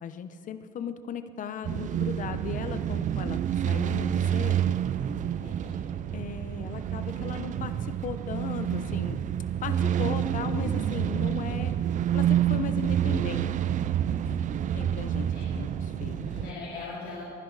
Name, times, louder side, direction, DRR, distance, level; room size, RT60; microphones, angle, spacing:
voice 1, 0.0-4.8 6.1-9.2 9.6-11.8 12.1-13.6 14.1-14.4 14.7-15.3 15.5-15.7 16.0-16.3, left 7 dB, 50° left, 10 dB, 0.9 m, -37 dB
sound 1, 1.6-16.5, right 10 dB, 50° right, 0.5 m, -28 dB
voice 2, 5.2-6.0 15.1-15.6 16.0-17.2, left 3 dB, 70° left, -6 dB, 3.1 m, -41 dB
22.5 x 10.5 x 4.0 m, 2.5 s
cardioid pair, 110°, 17 cm